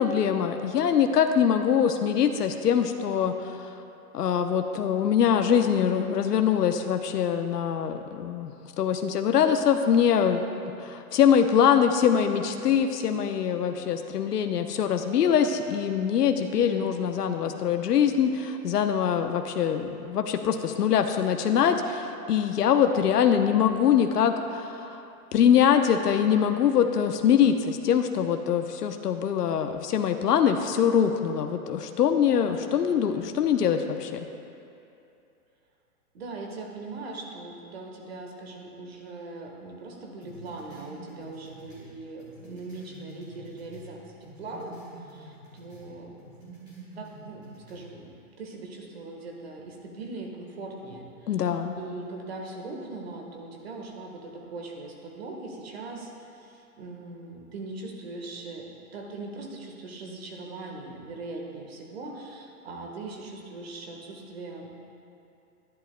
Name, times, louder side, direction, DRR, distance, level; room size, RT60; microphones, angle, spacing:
voice 1, 0.0-3.7 4.1-25.0 25.3-34.2 51.3-51.7, left 8 dB, 85° left, 6 dB, 0.9 m, -23 dB
voice 2, 16.5-17.1 17.4-17.8 32.4-33.3 36.1-44.8 45.1-46.2 47.0-47.4 47.7-48.1 48.4-51.5 51.8-58.7 58.9-64.7, right 3 dB, 40° right, 1 dB, 1.5 m, -40 dB
sound 1, 40.2-43.9 44.2-45.9 46.2-47.8, right 2 dB, 10° right, 1.7 m, -47 dB
22.5 x 11.0 x 2.2 m, 2.7 s
hypercardioid pair, 180°, 46 cm